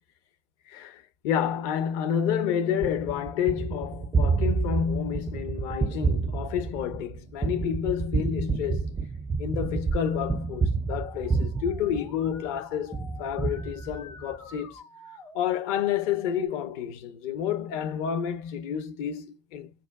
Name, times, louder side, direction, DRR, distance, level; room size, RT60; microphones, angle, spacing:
voice 1, 0.7-9.0 9.4-14.8 15.3-19.7, left 9 dB, 60° left, 0.7 m, -29 dB
Gunshot gunfire, 2.8-12.5 12.9-14.3, right 4 dB, 20° right, 0.4 m, -29 dB
Musical instrument, 10.9-16.5, left 4 dB, 85° left, 2.0 m, -49 dB
5.6 x 2.2 x 2.3 m
hypercardioid pair, 75°, 14 cm